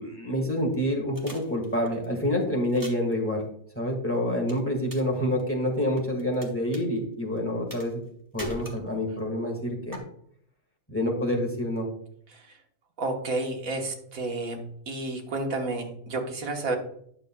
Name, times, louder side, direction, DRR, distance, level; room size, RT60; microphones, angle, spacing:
voice 1, 0.0-3.4 3.7-8.0 8.3-10.0 10.9-11.9, left 1 dB, 10° left, 0 dB, 1.5 m, -27 dB
sound 1, 1.1-2.0 2.6-3.1 4.5-5.1 5.4-6.4 6.7-6.8 7.7-8.1 8.4-9.2 9.9-10.0, equal, 15° right, 1.0 m, -40 dB
voice 2, 13.0-14.6 14.9-16.8, right 2 dB, 80° right, 2 dB, 1.6 m, -30 dB
9.6 x 6.5 x 2.2 m, 0.66 s
omnidirectional pair, 1.4 m